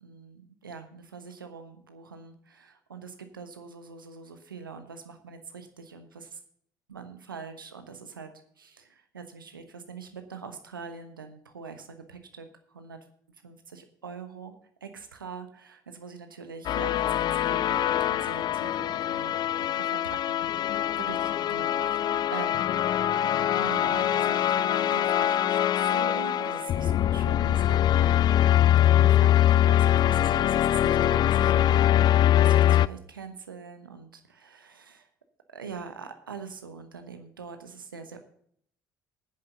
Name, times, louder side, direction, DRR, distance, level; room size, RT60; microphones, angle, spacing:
voice 1, 0.0-6.4 6.9-8.3 8.6-13.0 13.4-14.5 14.8-22.8 23.5-28.5 28.9-35.1 35.5-38.2, right 5 dB, 85° right, 7 dB, 1.1 m, -43 dB
sound 1, 16.6-32.9, left 12 dB, 40° left, 0.3 m, -23 dB
14.5 x 9.6 x 3.9 m, 0.65 s
figure-of-eight pair, 55°, 11 cm